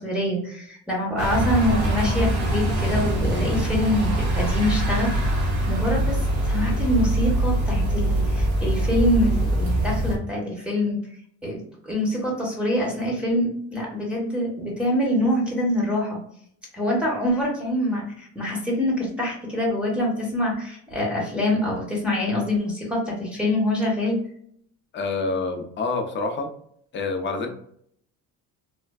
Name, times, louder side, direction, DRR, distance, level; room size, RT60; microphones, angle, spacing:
voice 1, 0.0-11.0 11.4-16.2 16.7-24.2, left 1 dB, 5° right, -4 dB, 1.1 m, -25 dB
sound 1, 1.2-10.2, right 1 dB, 65° right, 1.2 m, -23 dB
voice 2, 24.9-26.5 26.9-27.5, left 3 dB, 35° left, 5 dB, 0.5 m, -27 dB
3.3 x 2.2 x 2.3 m, 0.66 s
cardioid pair, 115°, 35 cm